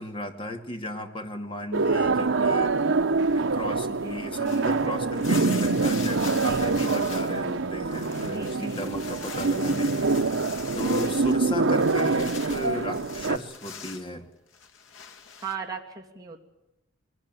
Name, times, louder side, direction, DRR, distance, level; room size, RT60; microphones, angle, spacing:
voice 1, 0.0-3.0 3.3-10.3 10.7-14.3, left 1 dB, 25° left, 6 dB, 2.4 m, -35 dB
sound 1, 1.7-13.4, right 3 dB, 75° right, 0.9 m, -25 dB
voice 2, 3.9-4.3 6.3-6.7 8.3-8.9 10.9-11.2 15.4-16.4, right 5 dB, 20° right, -1 dB, 2.8 m, -38 dB
sound 2, 4.4-7.4 7.7-14.1 14.5-15.5, left 7 dB, 80° left, 1.9 m, -42 dB
23.0 x 18.5 x 9.1 m, 0.92 s
head